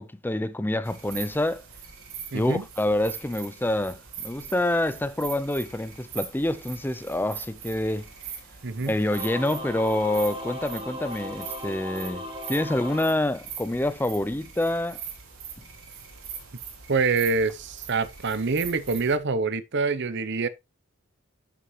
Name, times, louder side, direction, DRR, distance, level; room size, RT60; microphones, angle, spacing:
voice 1, 0.0-1.6 2.3-8.1 8.9-15.0, left 1 dB, 10° left, 0.5 m, -27 dB
sound 1, 0.8-19.2, right 7 dB, 75° right, 2.6 m, -42 dB
voice 2, 2.3-2.6 8.6-9.0 16.9-20.5, right 4 dB, 50° right, 0.7 m, -26 dB
Singing / Musical instrument, 9.0-13.9, left 1 dB, 25° right, 2.6 m, -38 dB
11.0 x 6.3 x 3.1 m
head